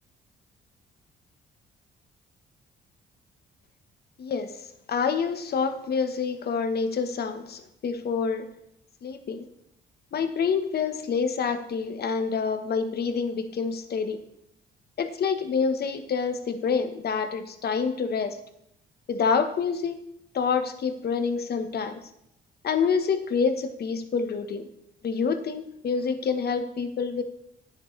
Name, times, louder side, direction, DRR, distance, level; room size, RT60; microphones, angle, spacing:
voice 1, 4.2-8.4 9.0-9.4 10.1-14.2 15.0-18.4 19.1-20.0 20.3-22.0 22.6-24.6 25.0-27.2, left 5 dB, 55° left, 8 dB, 1.1 m, -27 dB
10.5 x 9.8 x 3.2 m, 0.76 s
cardioid pair, 90°, 20 cm